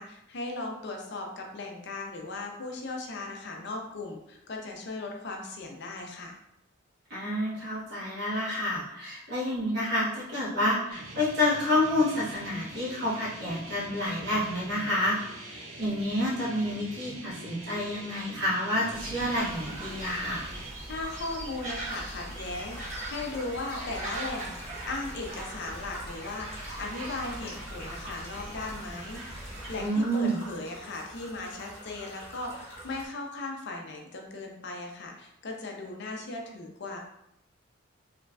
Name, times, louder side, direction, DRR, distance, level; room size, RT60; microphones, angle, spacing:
voice 1, 0.0-6.4 20.9-24.6 24.9-37.0, left 2 dB, 50° left, 1 dB, 0.5 m, -37 dB
voice 2, 7.1-15.2 15.4-20.5 29.8-30.4, left 1 dB, 50° right, -6 dB, 1.2 m, -29 dB
sound 1, 10.9-20.7, right 2 dB, 80° right, 0.8 m, -44 dB
sound 2, 18.9-29.9, right 2 dB, 35° right, 1.2 m, -40 dB
sound 3, 21.9-33.1, equal, 30° left, 1.1 m, -46 dB
3.8 x 3.1 x 2.2 m, 0.82 s
head